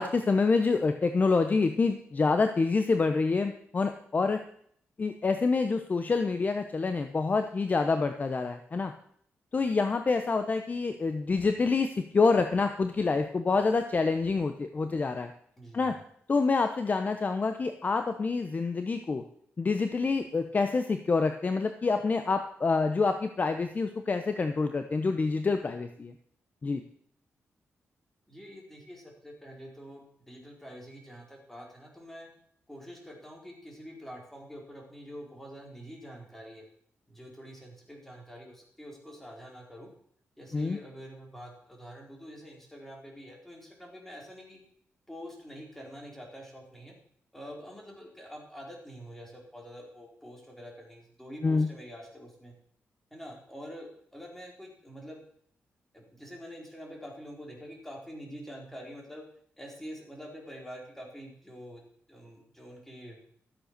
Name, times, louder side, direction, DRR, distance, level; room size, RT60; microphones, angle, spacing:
voice 1, 0.0-4.4 5.0-8.9 9.5-15.3 15.7-15.9 16.3-19.2 19.6-26.1 26.6-26.8 40.5-40.8 51.4-51.7, left 4 dB, 35° left, 7 dB, 0.9 m, -27 dB
voice 2, 15.6-15.9 28.3-32.3 32.7-36.6 37.1-39.9 40.4-44.6 45.1-46.9 47.3-52.5 53.1-53.9 54.1-55.2 55.9-59.2 59.6-61.8 62.1-63.2, equal, 5° left, 0 dB, 4.3 m, -46 dB
13.5 x 8.0 x 6.7 m, 0.63 s
cardioid pair, 110°, 5 cm